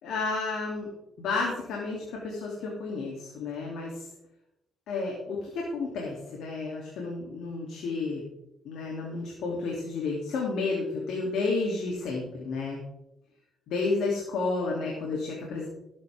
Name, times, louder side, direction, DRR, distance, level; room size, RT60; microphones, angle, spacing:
voice 1, 0.0-0.9 1.2-4.0 4.9-8.2 8.6-12.8 13.7-15.7, left 3 dB, 85° left, -2 dB, 2.9 m, -31 dB
17.0 x 9.4 x 3.6 m, 0.88 s
cardioid pair, 90°, 0 cm